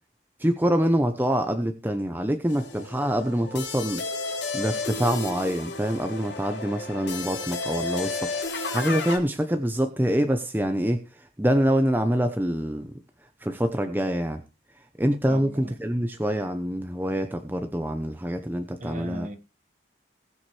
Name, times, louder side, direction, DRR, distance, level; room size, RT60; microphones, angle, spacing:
voice 1, 0.4-4.0 4.5-13.0 13.4-14.4 15.0-19.3, equal, 10° right, 0.8 m, -25 dB
sound 1, 2.5-9.2, left 3 dB, 75° left, 3.0 m, -32 dB
voice 2, 15.3-15.7 18.8-19.4, equal, 40° right, 1.5 m, -37 dB
20.0 x 7.2 x 3.3 m
head